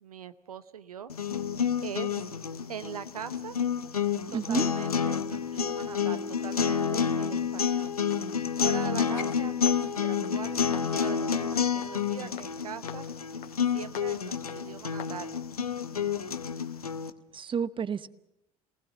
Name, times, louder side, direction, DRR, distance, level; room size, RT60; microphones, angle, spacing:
voice 1, 0.0-1.1 1.8-2.3 2.7-3.6 4.3-8.0 8.6-13.1 13.7-15.4, right 8 dB, 80° right, 14 dB, 0.9 m, -41 dB
sound 1, 1.1-17.1, left 7 dB, 85° left, 0.9 m, -29 dB
voice 2, 4.3-4.7 17.3-18.1, right 7 dB, 25° right, 17 dB, 0.9 m, -30 dB
sound 2, 8.1-15.2 15.8-15.9, left 9 dB, 50° left, 2.4 m, -47 dB
29.5 x 19.5 x 8.1 m, 0.83 s
figure-of-eight pair, 60°, 19 cm